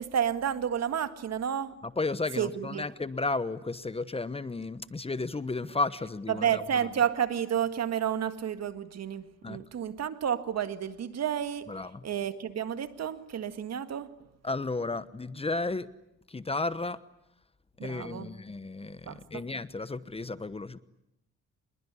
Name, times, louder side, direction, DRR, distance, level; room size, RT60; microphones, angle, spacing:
voice 1, 0.0-1.8 2.4-2.9 6.3-11.7 12.0-14.1 17.8-18.3 19.1-19.4, right 9 dB, 60° right, 1.9 m, -31 dB
voice 2, 2.0-6.6 9.4-9.6 11.7-12.0 14.4-15.9 16.3-17.0 17.8-20.8, left 3 dB, 20° left, 1.1 m, -33 dB
26.5 x 22.0 x 9.9 m
cardioid pair, 90°, 30 cm